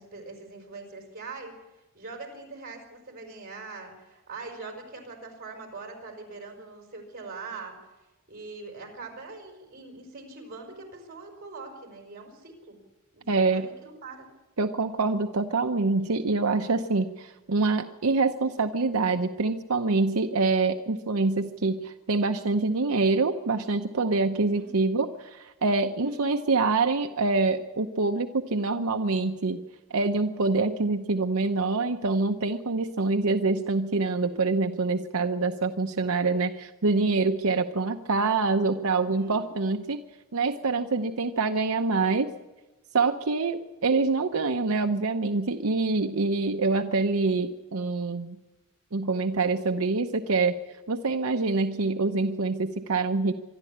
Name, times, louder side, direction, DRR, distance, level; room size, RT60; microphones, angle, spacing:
voice 1, 0.0-1.6 1.9-7.7 8.3-12.8 13.1-13.2 13.5-14.3 24.5-24.7 25.9-26.3 39.0-39.5, right 3 dB, 45° right, 2 dB, 5.1 m, -42 dB
voice 2, 13.3-13.7 14.6-29.6 29.9-40.0 40.3-42.3 42.9-48.4 48.9-50.5 50.9-53.3, right 3 dB, 85° right, 6 dB, 0.8 m, -25 dB
25.0 x 12.0 x 8.7 m, 1.1 s
head